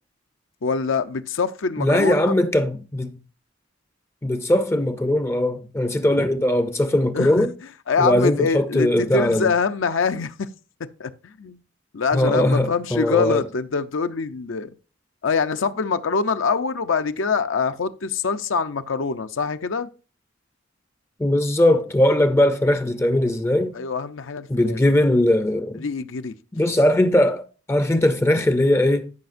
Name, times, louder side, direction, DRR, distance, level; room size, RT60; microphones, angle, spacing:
voice 1, 0.6-2.3 7.1-7.5 7.9-10.5 11.0-11.6 11.9-14.7 15.2-19.9 23.7-24.8 25.7-26.3 26.7-26.8, left 5 dB, 80° left, 0.6 m, -24 dB
voice 2, 1.8-3.2 4.2-7.5 8.0-9.5 12.1-13.4 21.2-23.8 24.5-25.9 26.5-29.1, left 1 dB, 15° left, 0.4 m, -20 dB
13.5 x 5.7 x 2.5 m
head